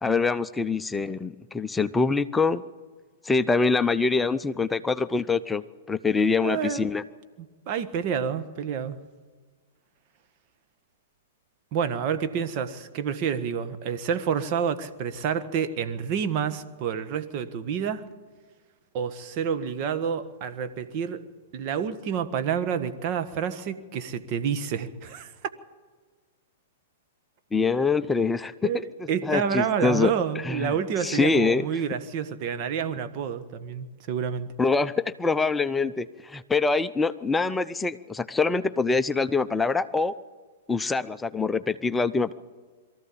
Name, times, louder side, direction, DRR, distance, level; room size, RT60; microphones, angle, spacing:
voice 1, 0.0-2.6 3.2-7.0 27.5-28.7 29.2-30.1 30.4-30.7 31.0-31.6 34.6-40.1 40.7-42.3, left 4 dB, 10° left, 12 dB, 0.7 m, -24 dB
voice 2, 6.4-6.9 7.7-9.0 11.7-18.0 18.9-21.2 21.5-25.3 28.6-34.5, right 7 dB, 45° right, 9 dB, 1.5 m, -28 dB
23.0 x 14.5 x 8.6 m, 1.5 s
hypercardioid pair, 110°, 0 cm